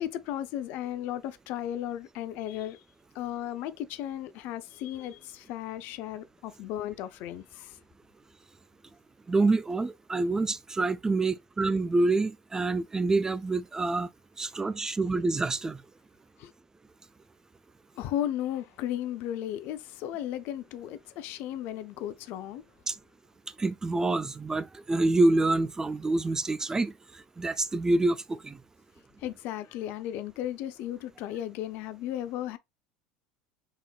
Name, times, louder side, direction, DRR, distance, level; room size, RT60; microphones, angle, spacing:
voice 1, 0.0-2.8 3.1-7.8 16.4-16.5 18.0-22.6 29.2-32.6, left 12 dB, 60° left, 0.5 m, -35 dB
voice 2, 9.3-14.1 14.4-15.8 22.9-23.0 23.6-26.9 27.4-28.6, right 2 dB, 15° right, 0.3 m, -26 dB
4.3 x 3.5 x 2.3 m
hypercardioid pair, 80°, 4 cm